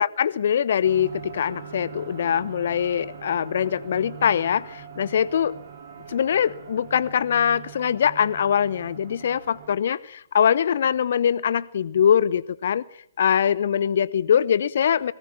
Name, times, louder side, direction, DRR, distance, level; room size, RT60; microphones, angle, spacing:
voice 1, 0.0-5.6 6.1-12.8 13.2-15.1, left 8 dB, 60° left, 0.8 m, -22 dB
sound 1, 0.8-9.7, right 7 dB, 55° right, 3.1 m, -42 dB
19.0 x 16.5 x 8.4 m
figure-of-eight pair, 125°, 0 cm